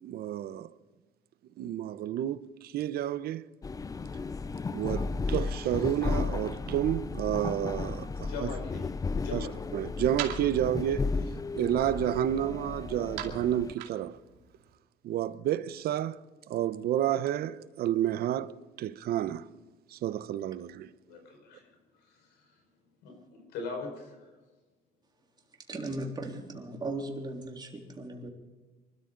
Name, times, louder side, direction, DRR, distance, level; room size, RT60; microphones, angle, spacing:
voice 1, 0.0-0.7 1.6-3.4 4.7-8.5 9.3-9.4 9.7-11.1 11.5-14.2 15.0-16.2 16.5-19.5 19.9-20.9, right 11 dB, 65° right, 0.8 m, -30 dB
sound 1, 3.6-13.7, left 4 dB, 20° left, 0.5 m, -34 dB
voice 2, 8.2-8.9 9.1-9.5 21.0-21.6 21.9-22.6 23.0-24.3, left 4 dB, 90° left, 5.1 m, -41 dB
sound 2, 8.3-14.8, right 11 dB, 85° right, 2.4 m, -45 dB
voice 3, 25.7-28.3, right 2 dB, 25° right, 3.5 m, -37 dB
24.5 x 13.0 x 3.9 m
cardioid pair, 110°, 17 cm